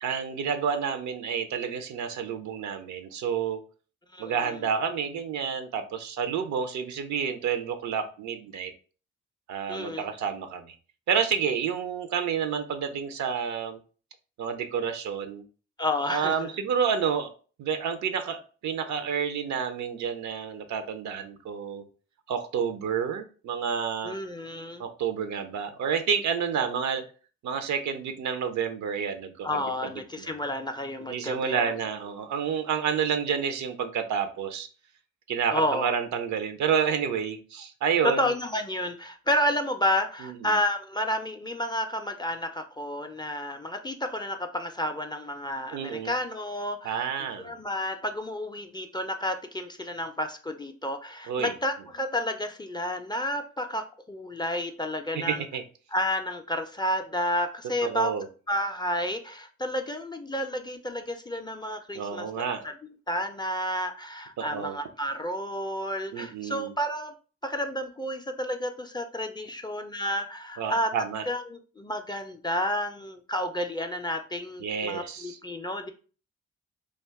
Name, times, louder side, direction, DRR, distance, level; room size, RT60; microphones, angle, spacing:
voice 1, 0.0-3.6 4.2-8.7 9.5-10.7 11.1-13.8 14.4-15.4 16.1-17.3 17.6-21.8 22.3-24.2 24.8-27.0 27.4-30.4 31.1-34.7 35.3-38.3 40.2-40.5 45.7-46.1 46.8-47.5 51.3-51.5 55.1-55.6 57.8-58.3 61.9-62.6 64.4-64.8 66.1-66.7 70.6-71.3 74.6-75.4, right 7 dB, 65° right, 9 dB, 0.5 m, -29 dB
voice 2, 4.1-4.5 9.7-10.0 15.8-16.5 24.0-24.8 29.4-31.7 35.5-35.9 38.0-55.4 55.9-58.1 58.5-62.3 62.6-62.7 63.1-67.1 67.4-70.9 71.3-75.9, left 1 dB, 15° left, 6 dB, 0.4 m, -31 dB
2.4 x 2.3 x 3.4 m, 0.38 s
supercardioid pair, 50°, 31 cm